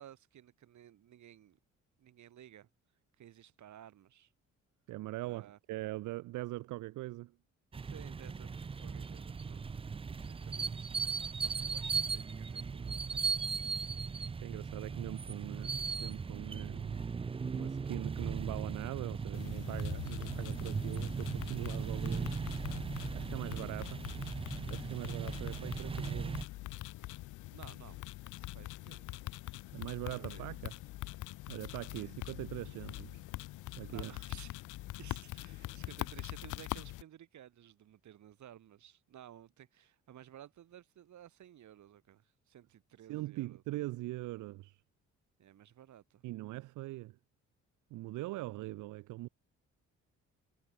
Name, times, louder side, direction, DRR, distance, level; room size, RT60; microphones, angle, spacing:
voice 1, 0.0-1.6 2.0-2.7 3.2-4.3 5.3-5.6 7.8-8.5 8.8-9.8 10.1-13.6 23.2-23.4 27.5-28.0 28.3-29.2 30.1-30.5 31.9-32.1 33.9-34.7 35.0-43.6 45.4-46.2, right 11 dB, 70° right, 5.3 m, -56 dB
voice 2, 4.9-7.3 14.4-17.1 17.5-22.3 23.1-24.1 24.7-26.5 29.7-30.7 31.5-33.2 33.7-34.1 43.1-44.8 46.2-47.2 47.9-49.3, right 18 dB, 85° right, 0.6 m, -42 dB
sound 1, 7.7-26.4, right 5 dB, 20° right, 0.4 m, -38 dB
sound 2, 19.3-37.0, left 18 dB, 80° left, 0.6 m, -44 dB
cardioid pair, 90°, 30 cm